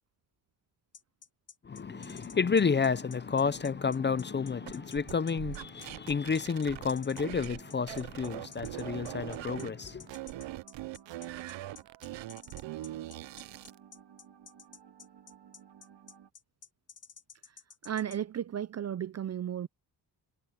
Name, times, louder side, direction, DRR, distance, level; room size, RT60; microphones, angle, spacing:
sound 1, 0.9-18.2, left 6 dB, 45° left, 1.4 m, -52 dB
voice 1, 1.6-10.1, left 5 dB, 25° left, 0.5 m, -30 dB
sound 2, 1.9-16.3, right 9 dB, 65° right, 2.1 m, -56 dB
sound 3, 4.7-7.6 7.9-9.7 10.1-13.8, right 15 dB, 80° right, 0.7 m, -41 dB
voice 2, 17.8-19.7, right 9 dB, 40° right, 0.4 m, -34 dB
cardioid pair, 110°, 44 cm